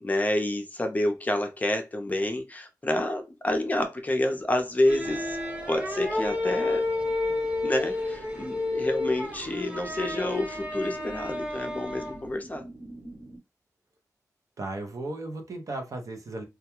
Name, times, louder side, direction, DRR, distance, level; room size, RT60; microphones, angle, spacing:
voice 1, 0.0-5.4 5.7-6.8 7.6-12.6, left 1 dB, 25° left, 0.5 m, -28 dB
sound 1, 4.8-12.3, left 2 dB, 20° right, 0.9 m, -31 dB
sound 2, 5.0-13.4, right 2 dB, 90° right, 1.1 m, -44 dB
voice 2, 14.6-16.4, right 2 dB, 55° right, 0.6 m, -35 dB
2.2 x 2.2 x 2.9 m
wide cardioid pair, 100°, 7 cm